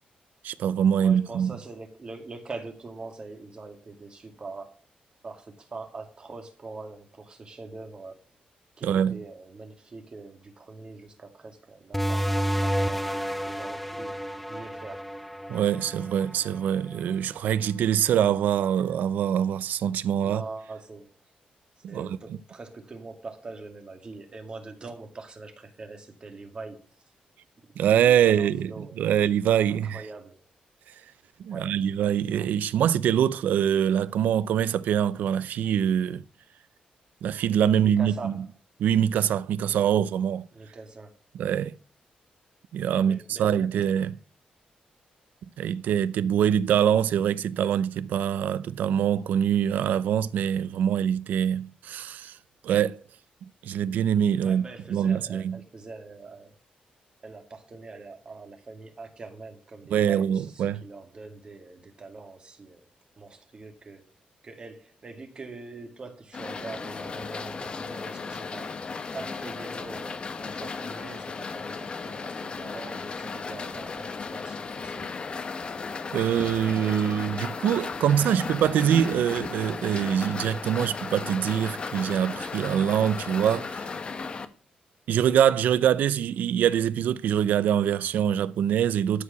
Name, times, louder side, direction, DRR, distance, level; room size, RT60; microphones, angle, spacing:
voice 1, 0.4-1.5 8.8-9.2 15.5-20.4 21.8-22.1 27.8-30.0 31.4-36.2 37.2-38.3 38.8-40.5 41.4-41.7 42.7-44.2 45.6-52.4 52.6-53.0 53.6-54.6 54.9-55.6 59.9-60.8 76.1-83.9 85.1-89.2, right 9 dB, 90° right, 0.5 m, -24 dB
voice 2, 1.0-4.9 5.2-8.2 8.8-13.1 13.5-14.2 14.5-15.1 20.2-21.1 21.9-26.8 27.9-29.1 29.8-30.5 31.5-31.8 37.8-38.4 40.5-41.2 43.0-43.8 54.4-56.6 57.2-62.9 63.2-64.1 64.4-68.8 69.1-75.2, right 3 dB, 35° right, 2.2 m, -43 dB
sound 1, 11.9-17.1, equal, 5° left, 0.6 m, -30 dB
sound 2, 66.3-84.5, left 4 dB, 35° left, 1.0 m, -35 dB
13.0 x 4.8 x 6.8 m
cardioid pair, 130°, 3 cm